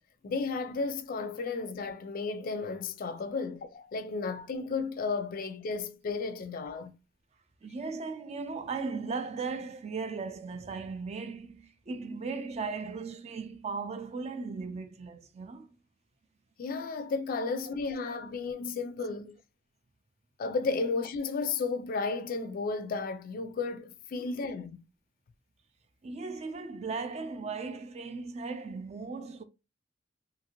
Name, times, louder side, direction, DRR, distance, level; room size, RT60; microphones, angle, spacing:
voice 1, 0.2-6.9 16.6-19.3 20.4-24.8, left 4 dB, 50° left, 0.4 m, -33 dB
voice 2, 7.6-15.7 24.2-24.3 26.0-29.4, right 4 dB, 35° right, 0.4 m, -37 dB
2.8 x 2.6 x 2.8 m
head